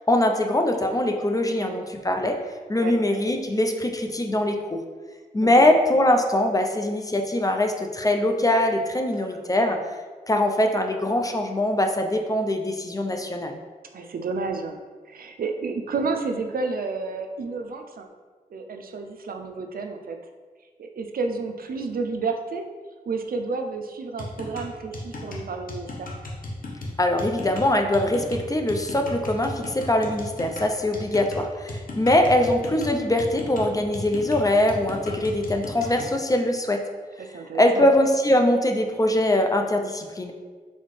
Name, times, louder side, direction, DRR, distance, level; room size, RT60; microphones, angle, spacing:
voice 1, 0.1-2.4 2.7-4.8 5.3-9.8 10.3-13.6 27.0-36.8 37.5-40.3, left 1 dB, 25° left, 4 dB, 0.4 m, -22 dB
voice 2, 1.4-1.8 2.8-3.0 5.4-5.7 13.9-14.8 15.1-18.1 18.5-20.2 20.8-22.6 23.1-26.1 37.2-37.9, right 4 dB, 75° right, 5 dB, 0.4 m, -31 dB
sound 1, 24.2-36.2, left 2 dB, 65° left, 0.8 m, -35 dB
4.2 x 3.6 x 3.2 m, 1.5 s
wide cardioid pair, 75°, 15 cm